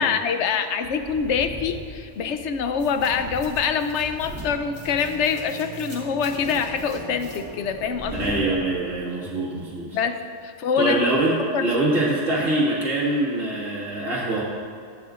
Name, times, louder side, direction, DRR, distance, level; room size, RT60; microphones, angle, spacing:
voice 1, 0.0-8.3 9.9-10.2 10.4-11.0 11.5-11.6, left 6 dB, 70° left, 8 dB, 1.0 m, -25 dB
sound 1, 0.8-5.6 6.0-8.4, right 1 dB, 75° right, 2.3 m, -41 dB
sound 2, 2.8-9.1, right 1 dB, 25° left, 2.8 m, -40 dB
voice 2, 8.2-10.0 10.8-14.4, right 2 dB, 90° right, -7 dB, 2.2 m, -24 dB
15.5 x 11.0 x 2.5 m, 2.3 s
omnidirectional pair, 1.3 m